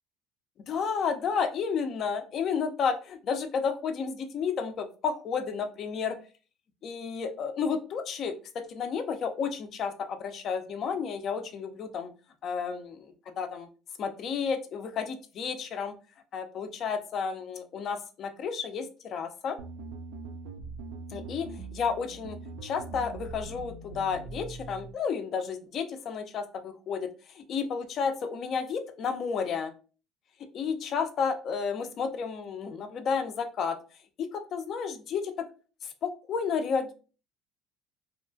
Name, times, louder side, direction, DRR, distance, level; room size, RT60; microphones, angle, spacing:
voice 1, 0.7-6.2 6.8-12.1 12.4-12.9 13.4-13.7 14.0-15.9 16.3-19.6 21.1-22.4 22.6-27.1 27.4-29.7 30.5-33.8 34.2-35.3 36.0-36.9, left 6 dB, 50° left, 7 dB, 0.5 m, -31 dB
sound 1, 19.6-24.9, right 3 dB, 80° right, 0.4 m, -42 dB
2.8 x 2.3 x 2.5 m, 0.36 s
supercardioid pair, 90°, 0 cm